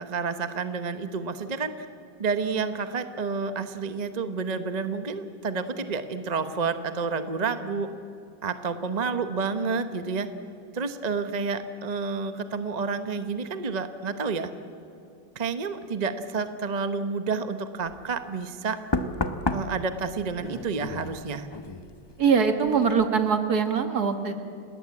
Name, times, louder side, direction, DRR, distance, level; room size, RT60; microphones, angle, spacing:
voice 1, 0.0-1.7 2.2-7.9 8.4-10.3 10.7-14.5 15.3-18.8 19.5-21.5, right 4 dB, 30° right, 9 dB, 0.8 m, -29 dB
Knock, 17.9-18.1 18.9-22.4 22.7-23.1, left 2 dB, 20° left, 0.7 m, -32 dB
voice 2, 22.2-24.4, right 6 dB, 55° right, 7 dB, 2.0 m, -23 dB
29.5 x 19.0 x 8.5 m, 2.4 s
omnidirectional pair, 2.1 m